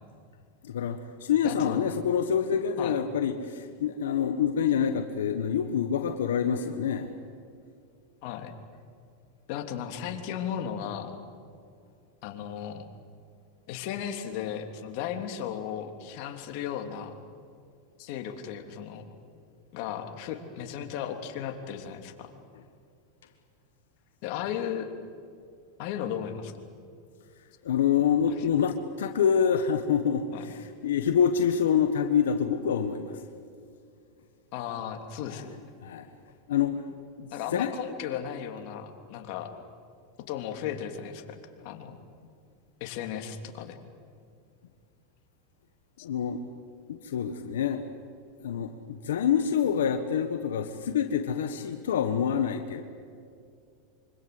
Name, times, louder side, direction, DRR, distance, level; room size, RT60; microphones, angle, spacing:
voice 1, 0.6-7.1 27.6-33.2 35.3-35.4 35.8-36.1 36.5-36.8 37.2-37.7 46.0-46.4 46.9-47.8 48.4-52.8, left 8 dB, 90° left, 7 dB, 1.4 m, -26 dB
voice 2, 1.4-1.8 2.8-3.0 8.2-8.5 9.5-11.2 12.2-12.8 13.7-17.1 18.0-19.0 19.7-22.3 24.2-24.9 25.8-26.5 28.3-28.5 30.3-30.4 34.5-35.5 37.3-39.5 40.3-42.0 42.8-43.8, left 9 dB, 60° left, 5 dB, 3.1 m, -35 dB
25.5 x 25.5 x 8.0 m, 2.4 s
supercardioid pair, 120°, 0 cm